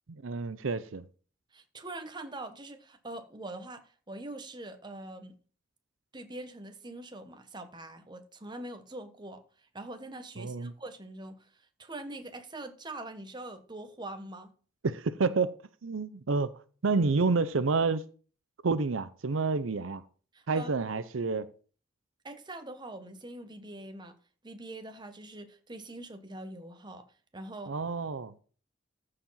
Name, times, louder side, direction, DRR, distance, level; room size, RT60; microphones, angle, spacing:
voice 1, 0.1-1.1 10.4-10.7 14.8-15.5 15.8-16.5 16.8-18.0 18.6-20.0 20.5-21.5 27.7-28.3, right 4 dB, 75° right, 0.6 m, -29 dB
voice 2, 1.5-5.3 6.1-9.4 9.7-11.5 11.8-14.5 20.3-20.7 22.2-24.1 24.4-27.0 27.3-27.7, right 2 dB, 20° right, 1.1 m, -43 dB
14.5 x 4.9 x 5.6 m
head